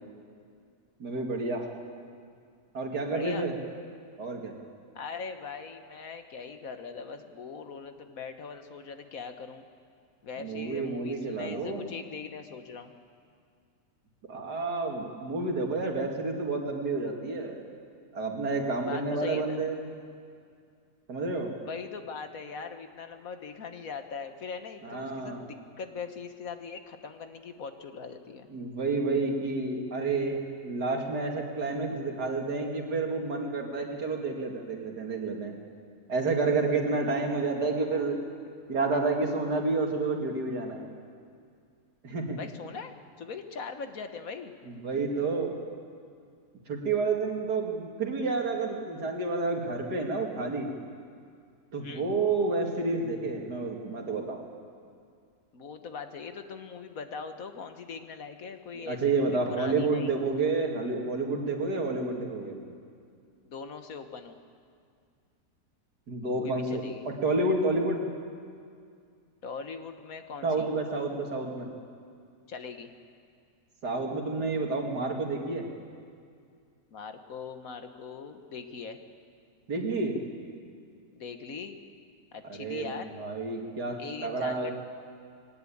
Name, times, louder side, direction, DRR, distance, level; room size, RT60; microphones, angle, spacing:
voice 1, 1.0-1.7 2.7-3.5 4.2-4.5 10.4-11.8 14.3-17.6 18.1-19.7 21.1-21.5 24.8-25.4 28.5-35.5 36.1-38.2 38.7-40.8 42.0-42.4 44.7-45.6 46.7-50.7 51.7-54.4 58.9-62.6 66.1-66.8 67.1-68.0 70.4-71.7 73.8-75.7 79.7-80.2 82.4-82.9 83.2-84.0 84.2-84.7, right 3 dB, 90° right, 1 dB, 2.8 m, -29 dB
voice 2, 3.1-3.5 4.9-9.6 10.2-12.9 18.8-19.6 21.6-28.5 42.3-42.9 43.2-44.5 51.8-52.0 55.5-60.1 63.4-64.4 66.4-67.1 69.4-70.7 72.5-72.9 76.9-79.0 81.1-81.8 82.3-83.1 84.0-84.7, left 5 dB, 60° left, 7 dB, 1.6 m, -41 dB
20.5 x 18.5 x 8.6 m, 2.2 s
omnidirectional pair, 1.7 m